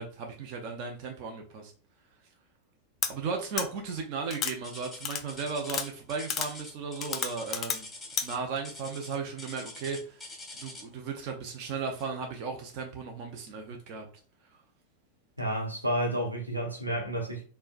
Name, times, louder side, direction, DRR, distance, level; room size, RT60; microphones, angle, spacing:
voice 1, 0.0-1.7 3.1-7.9 8.2-10.2 10.5-14.1, right 5 dB, 45° right, 0.6 m, -36 dB
sound 1, 3.0-3.1 3.6-3.7 4.3-4.5 5.0-5.2 5.7-5.9 6.3-6.5 7.0-7.8 8.2-8.3, left 7 dB, 30° left, 0.4 m, -30 dB
sound 2, 4.6-11.0 12.0-12.2 12.8-12.9 13.6-13.7, left 2 dB, 5° left, 1.1 m, -45 dB
voice 2, 15.4-17.4, equal, 85° right, 1.0 m, -30 dB
4.4 x 2.2 x 2.4 m
figure-of-eight pair, 90°, 0 cm